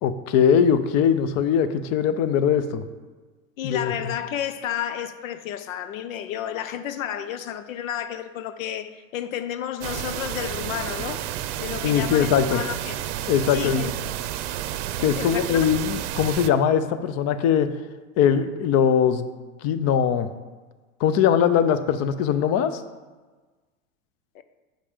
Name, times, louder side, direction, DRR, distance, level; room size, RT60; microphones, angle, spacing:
voice 1, 0.0-2.9 3.6-3.9 11.8-12.6 13.3-13.8 15.0-17.7 18.2-19.3 19.6-20.3 21.0-22.8, left 8 dB, 40° left, 0.6 m, -21 dB
voice 2, 3.6-11.3 11.6-13.0 13.5-14.2 15.0-15.7 24.3-24.4, left 10 dB, 90° left, 0.6 m, -31 dB
sound 1, 9.8-16.5, right 12 dB, 60° right, 0.6 m, -31 dB
7.4 x 5.3 x 5.1 m
supercardioid pair, 115°, 39 cm